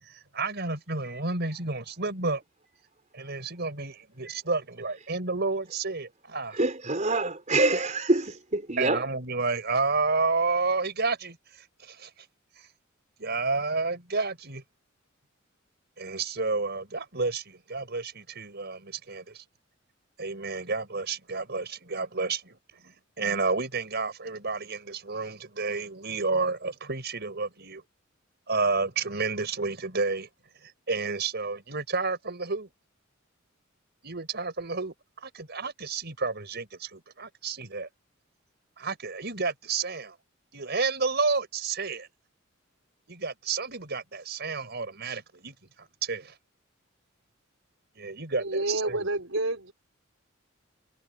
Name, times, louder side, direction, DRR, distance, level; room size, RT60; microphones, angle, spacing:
voice 1, 0.0-2.4 3.1-6.6 8.8-12.3 12.6-12.7 13.2-14.6 16.0-19.4 20.2-27.8 28.5-30.3 30.6-32.7 34.0-37.9 38.8-40.2 40.5-42.1 43.1-46.4 48.0-49.0, right 4 dB, 55° right, 5.3 m, -31 dB
voice 2, 6.5-9.0, right 2 dB, 35° right, 4.5 m, -25 dB
voice 3, 48.4-49.7, right 2 dB, 75° right, 5.7 m, -29 dB
head